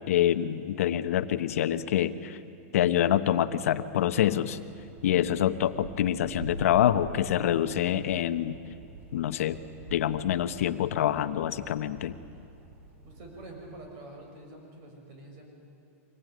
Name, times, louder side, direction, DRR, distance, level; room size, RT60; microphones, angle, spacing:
voice 1, 0.0-2.4 2.7-4.6 5.0-8.6 9.1-9.6 9.9-12.2, left 11 dB, 75° left, 10 dB, 1.1 m, -26 dB
sound 1, 3.1-13.9, right 1 dB, 60° right, 4.6 m, -47 dB
voice 2, 13.0-15.4, right 2 dB, 45° right, 2 dB, 6.9 m, -47 dB
24.5 x 20.0 x 9.6 m, 2.6 s
supercardioid pair, 155°, 8 cm